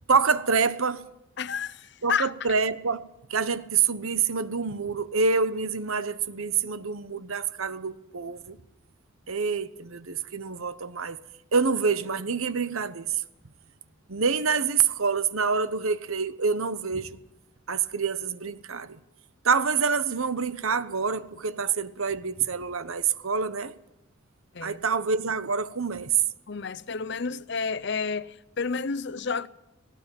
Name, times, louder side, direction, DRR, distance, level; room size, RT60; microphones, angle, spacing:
voice 1, 0.1-1.0 2.0-3.0 3.3-8.6 9.3-11.2 11.5-13.2 14.1-17.2 17.7-19.0 19.4-23.7 24.6-26.1, right 5 dB, 85° right, 1.1 m, -26 dB
voice 2, 1.4-2.3 24.5-24.8 26.5-29.5, left 5 dB, 55° left, 0.7 m, -30 dB
18.5 x 18.0 x 9.1 m
head